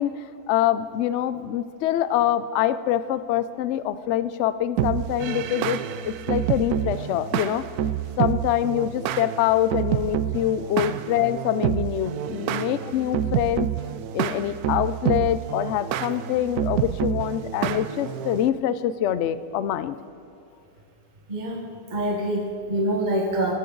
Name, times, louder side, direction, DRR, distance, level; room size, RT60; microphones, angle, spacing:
voice 1, 0.0-7.7 8.2-13.7 14.1-20.0, left 11 dB, 70° left, 14 dB, 0.7 m, -25 dB
sound 1, 4.8-18.5, right 10 dB, 70° right, 1.0 m, -28 dB
voice 2, 21.3-23.5, right 1 dB, 30° right, 1 dB, 1.3 m, -26 dB
19.0 x 13.0 x 3.9 m, 2.7 s
omnidirectional pair, 1.7 m